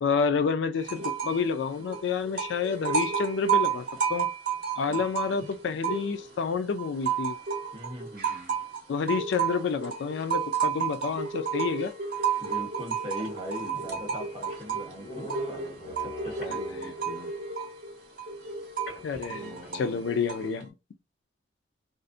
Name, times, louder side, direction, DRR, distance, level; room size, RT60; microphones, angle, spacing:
voice 1, 0.0-3.8 4.1-4.3 4.7-7.4 8.9-11.9 16.5-16.6 19.0-20.7, left 5 dB, 75° left, 0.3 m, -29 dB
sound 1, 0.8-1.5 1.7-6.4 6.8-20.6, right 7 dB, 55° right, 0.9 m, -32 dB
voice 2, 7.7-8.6 12.4-17.3 19.4-20.0, equal, 25° right, 0.9 m, -41 dB
sound 2, 12.2-12.3 12.8-12.9 13.1-17.2 18.9-19.9, left 2 dB, 50° left, 1.3 m, -42 dB
2.5 x 2.0 x 2.5 m
head